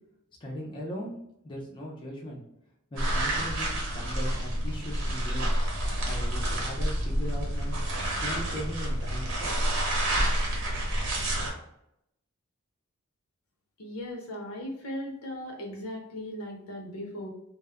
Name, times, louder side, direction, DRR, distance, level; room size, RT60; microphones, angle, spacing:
voice 1, 0.4-1.1 1.4-2.4 2.9-5.4 6.0-7.8 8.2-9.6, equal, 20° left, -3 dB, 0.5 m, -38 dB
sound 1, 3.0-11.5, right 1 dB, 60° right, 0.8 m, -29 dB
voice 2, 13.8-17.3, left 1 dB, 75° left, 0 dB, 0.7 m, -38 dB
2.2 x 2.0 x 3.5 m, 0.78 s
head